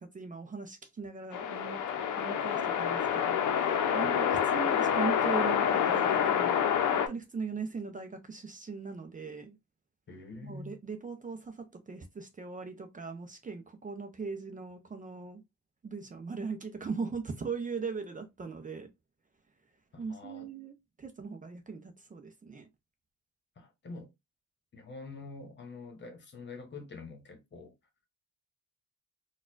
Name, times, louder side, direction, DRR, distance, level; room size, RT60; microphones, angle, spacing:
voice 1, 0.0-1.9 2.2-6.6 6.9-9.6 10.4-15.4 15.8-18.9 20.0-22.7, right 4 dB, 25° right, 0.6 m, -39 dB
sound 1, 1.3-7.1, left 8 dB, 80° left, 0.7 m, -27 dB
voice 2, 10.1-10.8 19.9-20.5 23.6-24.1 24.7-27.7, left 3 dB, 35° left, 1.2 m, -46 dB
4.0 x 2.4 x 2.4 m
cardioid pair, 90°, 30 cm